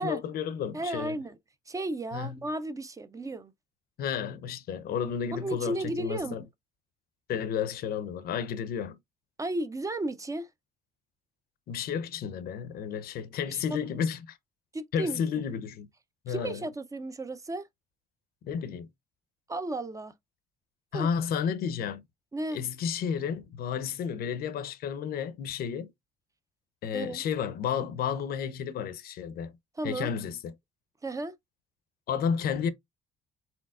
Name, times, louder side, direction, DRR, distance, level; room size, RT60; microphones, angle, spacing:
voice 1, 0.0-1.2 2.1-2.4 4.0-6.4 7.3-9.0 11.7-14.4 14.9-15.9 16.2-16.6 18.4-18.9 20.9-22.0 22.5-25.9 26.8-29.5 29.8-30.5 32.1-32.7, left 7 dB, 65° left, 0.7 m, -32 dB
voice 2, 0.7-1.3 1.7-3.5 5.3-6.4 9.4-10.5 13.5-13.6 14.7-15.2 16.3-17.7 19.5-20.1 20.9-21.1 22.3-22.6 26.9-27.2 29.8-30.1 31.0-31.3, right 2 dB, 20° right, 0.5 m, -34 dB
4.4 x 3.9 x 2.4 m
cardioid pair, 110°, 17 cm